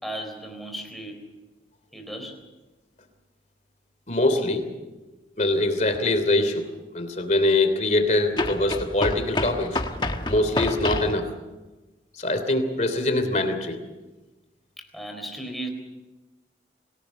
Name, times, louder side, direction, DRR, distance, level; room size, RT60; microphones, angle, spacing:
voice 1, 0.0-1.2 1.9-2.5 14.8-15.7, right 1 dB, ahead, 3 dB, 3.8 m, -36 dB
voice 2, 4.1-4.7 5.4-6.7 6.9-9.8 10.2-11.3 12.2-13.8, left 2 dB, 40° left, 8 dB, 3.0 m, -23 dB
sound 1, 5.9-6.0 8.3-11.2, left 2 dB, 25° left, 1.2 m, -28 dB
25.5 x 17.5 x 7.3 m, 1.1 s
head